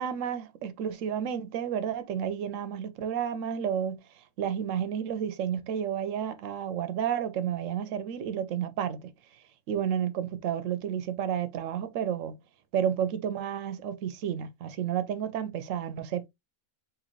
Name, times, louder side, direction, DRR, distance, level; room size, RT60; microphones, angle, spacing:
voice 1, 0.0-4.0 4.4-9.1 9.7-12.4 12.7-16.3, right 9 dB, 70° right, 0.9 m, -31 dB
3.8 x 3.1 x 3.0 m
omnidirectional pair, 1.5 m